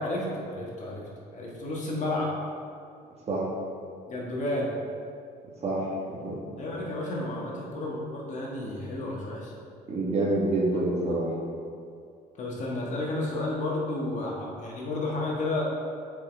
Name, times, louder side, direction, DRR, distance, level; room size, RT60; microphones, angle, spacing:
voice 1, 0.0-2.3 4.1-4.7 6.6-9.5 12.3-15.6, left 2 dB, 45° left, -4 dB, 1.6 m, -31 dB
voice 2, 5.6-6.4 9.9-11.3, right 2 dB, 40° right, -4 dB, 1.7 m, -27 dB
8.2 x 5.0 x 3.5 m, 2.3 s
cardioid pair, 110°, 17 cm